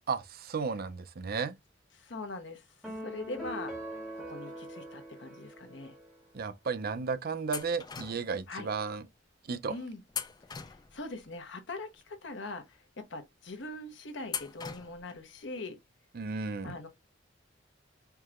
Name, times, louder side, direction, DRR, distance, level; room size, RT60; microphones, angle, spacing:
voice 1, 0.1-1.5 6.3-9.0 9.5-9.8 16.1-16.8, right 5 dB, 50° right, 0.5 m, -34 dB
voice 2, 2.0-2.6 3.0-3.7 4.1-6.0 8.5-8.7 9.7-10.0 10.5-12.6 13.0-15.8 16.6-16.9, left 2 dB, 65° left, 0.9 m, -42 dB
sound 1, 2.8-6.3, right 1 dB, ahead, 1.8 m, -42 dB
sound 2, 7.5-8.4 10.1-11.2 14.3-15.2, left 6 dB, 20° left, 0.4 m, -40 dB
4.6 x 2.9 x 2.4 m
head